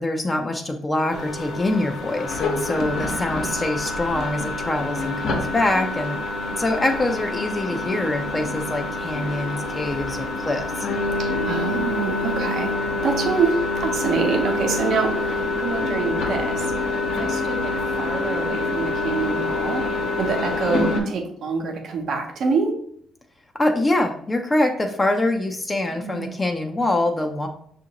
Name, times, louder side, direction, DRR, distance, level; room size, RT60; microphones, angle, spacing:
voice 1, 0.0-6.2 6.6-10.9 23.6-27.5, left 1 dB, 20° left, 3 dB, 0.4 m, -24 dB
sound 1, 1.1-21.0, left 2 dB, 75° left, 0.9 m, -26 dB
voice 2, 11.2-12.7 13.0-16.7 17.1-17.7 18.0-19.8 20.2-22.7 25.9-26.4, right 5 dB, 65° right, 3 dB, 0.7 m, -26 dB
6.0 x 2.5 x 2.8 m, 0.65 s
cardioid pair, 90°, 0 cm